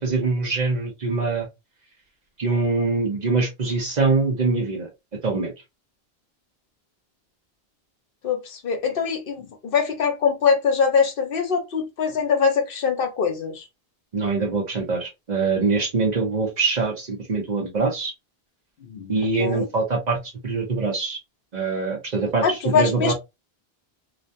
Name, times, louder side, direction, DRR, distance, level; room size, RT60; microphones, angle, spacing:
voice 1, 0.0-1.5 2.4-4.9 5.2-5.5 14.1-18.1 19.1-21.2 21.5-23.1, right 4 dB, 50° right, 0.8 m, -23 dB
voice 2, 8.2-13.7 18.8-19.7 22.4-23.1, left 6 dB, 65° left, 0.8 m, -23 dB
2.5 x 2.2 x 2.5 m
omnidirectional pair, 1.0 m